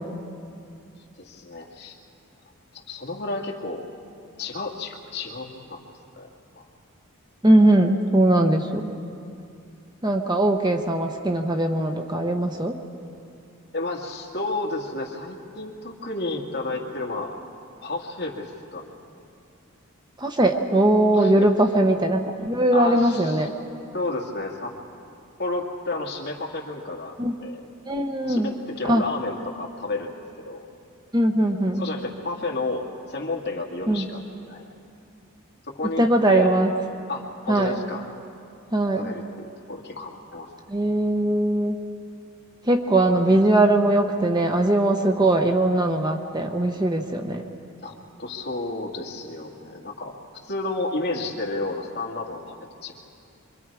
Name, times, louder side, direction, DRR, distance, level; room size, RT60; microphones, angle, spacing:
voice 1, 1.2-2.0 2.7-3.8 4.4-5.8 6.1-6.3 6.5-6.7 13.7-17.3 17.8-19.1 21.1-21.3 22.7-23.5 23.9-24.7 25.4-27.2 27.4-27.6 28.2-30.7 31.8-34.7 35.7-36.5 37.1-38.0 38.9-40.5 47.8-50.1 50.4-52.5 52.8-52.9, left 2 dB, 50° left, -1 dB, 2.2 m, -31 dB
voice 2, 7.4-8.9 10.0-12.7 20.2-23.5 27.2-27.3 27.9-28.5 28.9-29.0 31.1-31.8 33.9-34.1 36.0-36.7 37.5-37.8 38.7-39.1 40.7-41.8 42.7-47.4, right 1 dB, 20° right, 4 dB, 0.9 m, -20 dB
26.0 x 24.0 x 4.9 m, 2.5 s
head